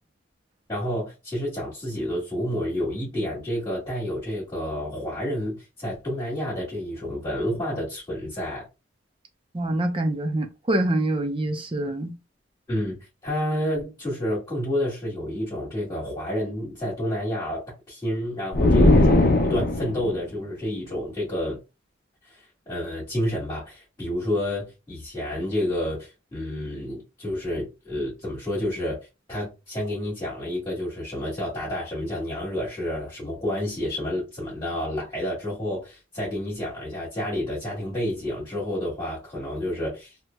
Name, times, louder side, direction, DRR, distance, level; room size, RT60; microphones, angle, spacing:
voice 1, 0.7-8.7 12.7-21.6 22.2-29.0 29.3-40.2, left 1 dB, 20° left, 1.8 m, -29 dB
voice 2, 9.5-12.1, right 1 dB, 30° right, 0.6 m, -25 dB
sound 1, 18.5-20.2, left 1 dB, 50° left, 0.6 m, -18 dB
3.2 x 2.8 x 2.2 m
head